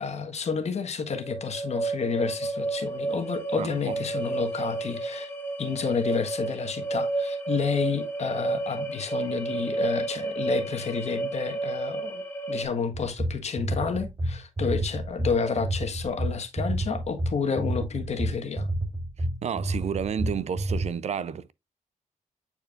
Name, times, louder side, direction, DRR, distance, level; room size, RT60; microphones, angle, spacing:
voice 1, 0.0-5.3 5.6-12.2 12.5-18.7, left 5 dB, 55° left, 1.4 m, -30 dB
sound 1, 1.1-12.6, right 3 dB, 15° left, 1.8 m, -31 dB
voice 2, 3.6-4.0 19.2-21.5, right 7 dB, 55° right, 0.4 m, -31 dB
sound 2, 12.9-20.9, right 1 dB, 30° right, 1.8 m, -29 dB
8.8 x 4.5 x 2.4 m
cardioid pair, 95°, 14 cm